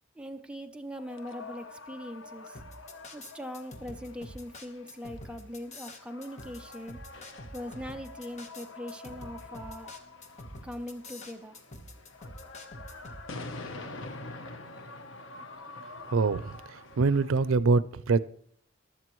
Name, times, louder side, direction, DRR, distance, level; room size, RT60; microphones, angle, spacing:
voice 1, 0.2-2.6 3.1-7.0 7.5-9.9 10.6-11.6, equal, 5° right, 0.7 m, -41 dB
sound 1, 1.0-17.6, left 3 dB, 70° left, 1.0 m, -46 dB
sound 2, 2.5-13.2, left 1 dB, 35° left, 1.2 m, -46 dB
voice 2, 16.1-16.5 17.0-18.2, right 4 dB, 90° right, 0.5 m, -24 dB
15.0 x 12.0 x 3.1 m
head